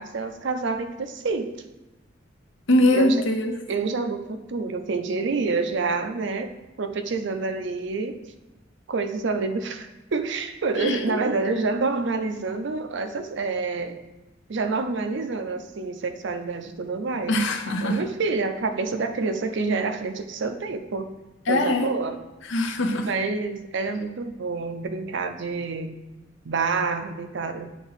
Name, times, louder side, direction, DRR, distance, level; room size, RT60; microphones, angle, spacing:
voice 1, 0.0-1.6 2.9-3.2 3.7-6.5 6.8-8.2 8.9-14.0 14.5-17.4 17.8-21.1 21.5-22.2 23.1-26.0 26.4-27.7, right 4 dB, 65° right, 7 dB, 0.5 m, -27 dB
voice 2, 2.7-3.5 10.8-11.2 17.3-18.0 21.5-21.9 22.5-23.1, left 1 dB, 70° left, 4 dB, 0.7 m, -22 dB
8.2 x 3.0 x 4.0 m, 1.1 s
head